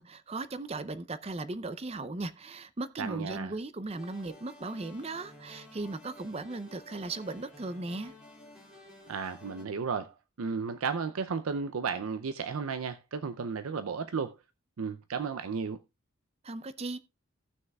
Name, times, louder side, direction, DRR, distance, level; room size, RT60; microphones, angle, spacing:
voice 1, 0.0-8.1 16.4-17.0, right 2 dB, 30° right, 0.5 m, -37 dB
voice 2, 3.0-3.5 9.1-14.3 14.8-15.8, right 5 dB, 90° right, 0.5 m, -34 dB
sound 1, 4.0-9.6, left 1 dB, 5° right, 2.2 m, -53 dB
17.5 x 6.3 x 2.3 m
head